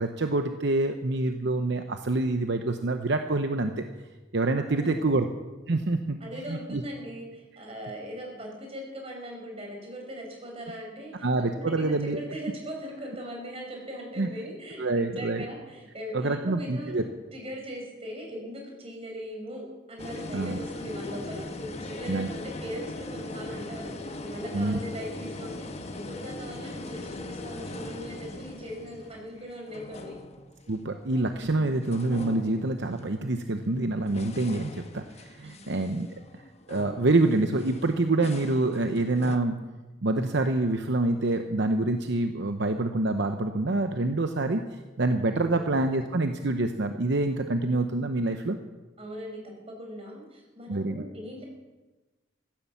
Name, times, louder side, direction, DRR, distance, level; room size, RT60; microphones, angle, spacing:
voice 1, 0.0-3.8 4.3-5.3 5.7-6.2 6.5-6.8 11.2-12.2 14.2-14.3 14.8-15.5 16.1-17.0 20.3-20.6 22.1-22.3 24.5-24.8 30.7-36.1 36.7-39.6 40.0-48.6 50.7-51.0, right 2 dB, 65° right, 7 dB, 0.8 m, -26 dB
voice 2, 4.6-5.0 6.2-23.9 24.2-30.2 35.4-35.8 45.4-45.8 49.0-51.4, equal, 30° right, 1 dB, 4.9 m, -40 dB
sound 1, 20.0-31.5 31.8-33.2 33.8-39.4, left 2 dB, 35° left, 1.1 m, -40 dB
15.5 x 12.0 x 7.2 m, 1.2 s
head